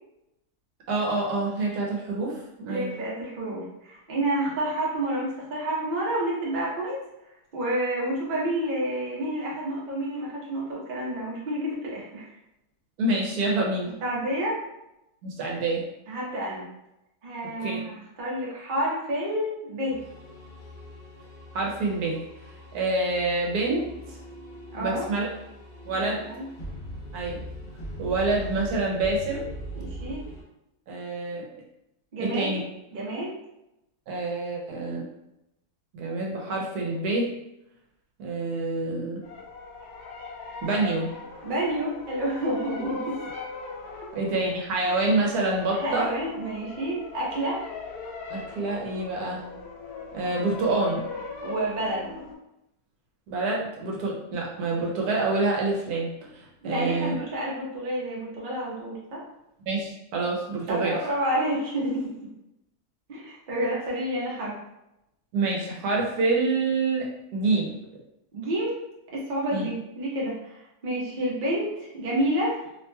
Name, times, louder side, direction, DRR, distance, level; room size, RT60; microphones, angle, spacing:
voice 1, 0.9-2.9 13.0-13.9 15.2-15.8 17.6-17.8 21.5-22.2 22.7-24.2 24.8-25.3 25.8-26.2 27.1-27.4 28.0-29.5 30.9-31.5 32.2-32.6 34.1-35.1 35.9-37.3 38.2-39.2 40.6-41.1 42.8-42.9 44.1-46.1 48.3-49.5 50.1-51.1 53.3-57.1 59.7-61.0 65.3-67.7 69.5-69.7, right 2 dB, 75° right, -2 dB, 1.2 m, -27 dB
voice 2, 2.7-7.0 7.5-12.3 14.0-14.6 16.1-16.7 17.2-20.0 24.7-25.1 25.9-26.5 29.8-30.2 32.1-32.6 32.9-33.3 41.4-43.2 45.8-47.6 51.4-52.1 56.6-59.2 60.7-62.1 63.1-64.5 68.3-68.8 69.1-72.6, right 1 dB, 45° right, -4 dB, 0.7 m, -29 dB
sound 1, 19.9-30.4, right 1 dB, 45° left, 0.9 m, -41 dB
sound 2, 39.2-52.3, left 4 dB, 75° left, 1.2 m, -39 dB
2.9 x 2.8 x 2.2 m, 0.87 s
omnidirectional pair, 1.7 m